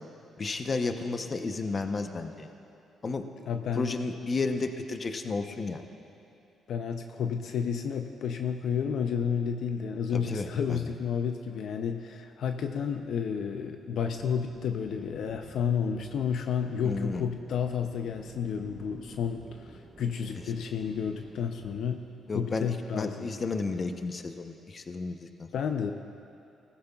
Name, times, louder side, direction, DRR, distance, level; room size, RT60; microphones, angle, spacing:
voice 1, 0.4-2.5 3.0-3.2 3.8-5.8 10.1-10.9 16.8-17.2 22.3-25.5, left 3 dB, 35° left, 7 dB, 0.8 m, -32 dB
voice 2, 3.5-3.9 6.7-22.0 22.3-23.3 25.5-25.9, left 7 dB, 70° left, 6 dB, 0.5 m, -31 dB
sound 1, 14.1-21.9, right 2 dB, 45° right, 2.4 m, -51 dB
18.5 x 14.5 x 2.4 m, 2.7 s
cardioid pair, 90°, 0 cm